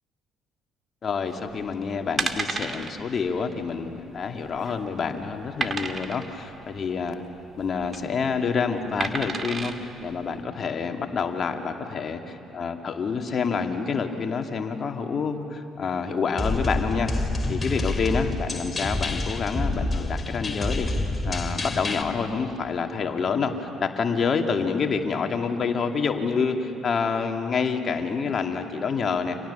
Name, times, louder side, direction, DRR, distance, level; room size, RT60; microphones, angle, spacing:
voice 1, 1.0-7.2 7.6-12.2 12.5-17.1 17.5-20.9 21.2-29.4, left 5 dB, 45° left, 4 dB, 2.5 m, -27 dB
sound 1, 1.5-1.7 2.2-2.9 3.3-3.4 3.7-3.8 4.4-4.8 5.6-6.3 7.6-8.0 9.0-9.8 10.4-10.5, right 4 dB, 35° right, 2.3 m, -30 dB
sound 2, 16.4-22.0, left 2 dB, 25° left, 3.4 m, -28 dB
29.5 x 27.0 x 7.0 m, 2.8 s
hypercardioid pair, 50°, 0 cm